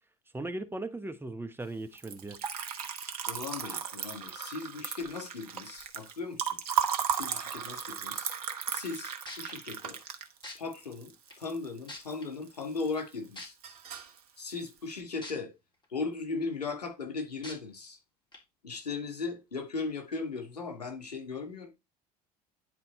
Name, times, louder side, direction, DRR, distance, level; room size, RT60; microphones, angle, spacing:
voice 1, 0.3-2.4, right 2 dB, 10° right, 1.0 m, -38 dB
Liquid, 1.9-12.1 12.5-13.1 13.4-14.2, right 8 dB, 70° right, 1.1 m, -35 dB
voice 2, 3.3-6.4 7.1-8.3 8.7-10.0 10.6-13.5 14.4-15.5 15.9-18.0 18.6-21.7, left 4 dB, 75° left, 2.3 m, -37 dB
sound 1, 9.3-9.5 10.4-10.5 11.3-11.4 11.9-12.2 13.4-13.5 15.2-15.3 15.8-15.9 17.4-17.5 18.3-18.4, left 2 dB, 25° left, 3.7 m, -42 dB
10.0 x 4.1 x 4.3 m
figure-of-eight pair, 65°, 20 cm